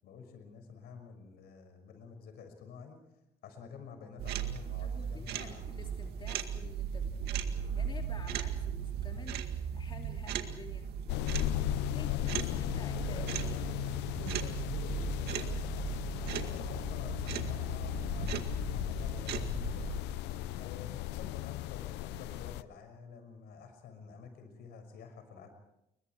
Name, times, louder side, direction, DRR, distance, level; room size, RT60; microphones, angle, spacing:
voice 1, 0.0-3.0 3.4-5.6 11.7-13.3 14.4-20.2 20.6-25.5, left 6 dB, 70° left, 7 dB, 6.1 m, -50 dB
sound 1, 4.2-20.0, right 8 dB, 75° right, 2.0 m, -37 dB
voice 2, 4.8-10.9 11.9-13.7 20.6-21.0, left 4 dB, 30° left, 2 dB, 2.8 m, -51 dB
sound 2, 11.1-22.6, left 15 dB, 90° left, 0.7 m, -36 dB
29.5 x 22.5 x 4.7 m, 0.83 s
cardioid pair, 110°, 17 cm